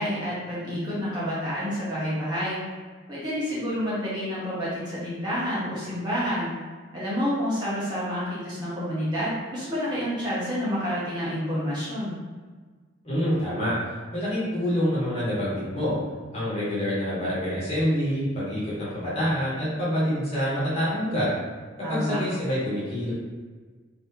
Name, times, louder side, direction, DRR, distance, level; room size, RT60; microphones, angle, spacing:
voice 1, 0.0-2.6 3.1-6.5 6.9-12.1 21.8-22.2, equal, 20° right, -9 dB, 1.0 m, -29 dB
voice 2, 13.0-13.8 14.1-15.9 16.3-21.3 21.9-23.1, equal, 30° left, -9 dB, 1.5 m, -26 dB
4.0 x 3.3 x 2.8 m, 1.4 s
head